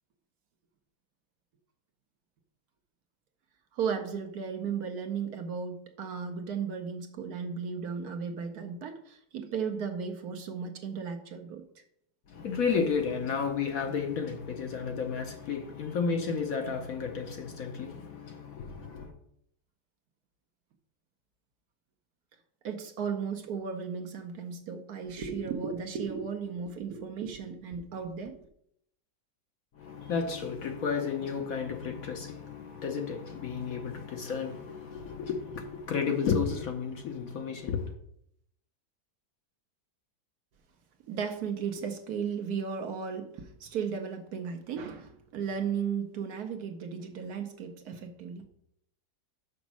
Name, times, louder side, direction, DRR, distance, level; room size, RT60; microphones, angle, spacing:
voice 1, 3.7-11.7 22.6-28.4 41.1-48.5, right 6 dB, 65° right, 1.2 m, -35 dB
voice 2, 12.3-19.1 29.8-37.9, left 6 dB, 60° left, 1.1 m, -32 dB
6.2 x 5.1 x 6.0 m
omnidirectional pair, 1.9 m